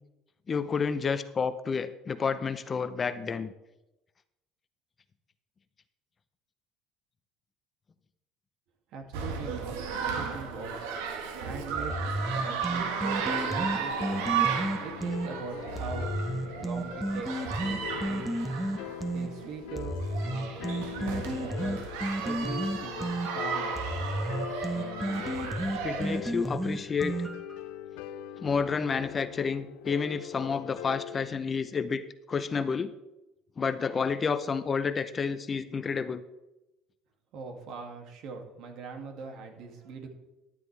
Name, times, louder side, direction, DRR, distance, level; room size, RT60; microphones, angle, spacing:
voice 1, 0.5-3.5 25.8-27.1 28.4-32.9 33.6-36.2, left 5 dB, 30° left, 12 dB, 0.7 m, -30 dB
voice 2, 8.9-9.8 10.0-10.8 11.4-11.9 12.4-14.2 14.7-16.1 16.5-18.3 19.1-21.9 22.2-24.0 37.3-40.1, right 4 dB, 65° right, 4 dB, 2.3 m, -42 dB
sound 1, 9.1-26.2, right 6 dB, 90° right, 1.5 m, -34 dB
sound 2, 11.8-15.3 15.8-19.3 19.8-27.6, right 1 dB, 5° right, 1.2 m, -32 dB
sound 3, 12.9-31.3, left 12 dB, 80° left, 0.8 m, -42 dB
13.5 x 10.5 x 3.4 m, 0.94 s
supercardioid pair, 100°, 0 cm